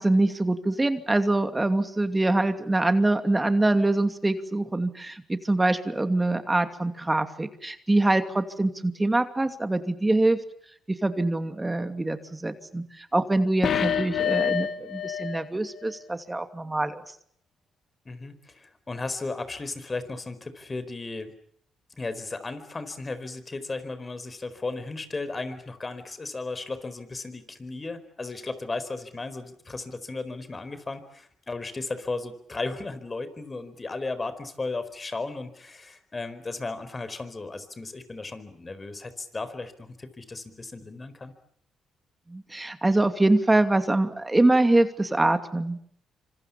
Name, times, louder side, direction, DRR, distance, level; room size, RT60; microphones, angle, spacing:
voice 1, 0.0-10.4 10.9-17.0 42.3-45.8, right 2 dB, 20° right, 8 dB, 2.6 m, -24 dB
sound 1, 13.6-15.5 15.8-15.9, left 8 dB, 60° left, 1.7 m, -27 dB
voice 2, 18.0-21.3 21.9-41.3, left 3 dB, 30° left, 13 dB, 4.5 m, -35 dB
26.0 x 26.0 x 7.3 m, 0.64 s
supercardioid pair, 55°, 0 cm